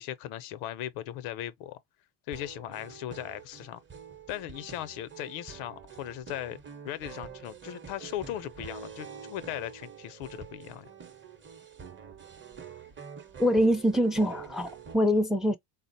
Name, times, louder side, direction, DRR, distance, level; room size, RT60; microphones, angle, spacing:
voice 1, 0.0-1.8 2.3-3.8 4.3-6.6 6.8-10.9, left 12 dB, 80° left, 0.6 m, -38 dB
sound 1, 2.3-14.9, right 7 dB, 25° right, 0.8 m, -46 dB
voice 2, 13.4-15.6, equal, ahead, 0.4 m, -24 dB
3.6 x 2.0 x 2.5 m
supercardioid pair, 80°, 47 cm